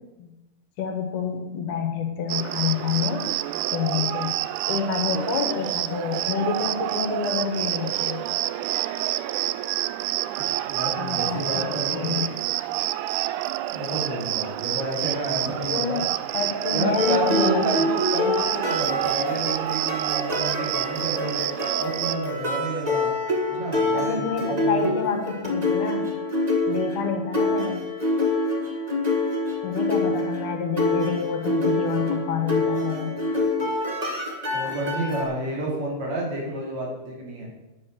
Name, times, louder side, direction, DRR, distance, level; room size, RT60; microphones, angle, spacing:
voice 1, 0.8-3.3 3.7-4.4 4.7-8.3 11.0-11.5 11.9-12.4 15.6-16.0 16.3-17.6 23.9-26.2 26.7-27.8 29.6-33.2, left 6 dB, 70° left, 4 dB, 2.7 m, -28 dB
Cricket, 2.3-22.2, right 15 dB, 80° right, 1.8 m, -28 dB
voice 2, 10.4-12.2 13.7-16.0 16.7-21.5 21.8-23.1 23.5-24.9 34.5-37.5, right 1 dB, 55° right, -2 dB, 4.2 m, -30 dB
sound 1, 17.0-35.2, left 2 dB, 25° right, 0.8 m, -26 dB
9.8 x 8.4 x 6.6 m, 1.0 s
omnidirectional pair, 3.9 m